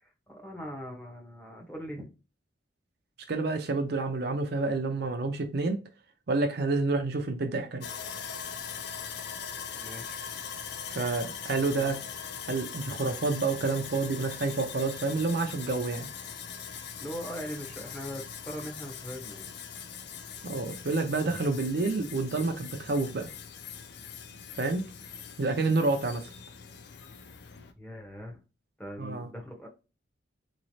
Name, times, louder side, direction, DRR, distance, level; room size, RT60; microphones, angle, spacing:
voice 1, 0.0-2.1 9.8-10.2 11.6-11.9 17.0-19.5 27.8-28.4 28.8-29.7, equal, 10° left, 0.8 m, -41 dB
voice 2, 3.3-5.8 6.3-8.0 10.9-12.0 12.5-16.1 20.4-23.3 24.6-24.8 25.4-26.3 29.0-29.3, right 3 dB, 55° right, 0.5 m, -29 dB
Sawing, 7.8-27.7, left 7 dB, 55° left, 0.4 m, -41 dB
3.9 x 3.1 x 2.6 m
head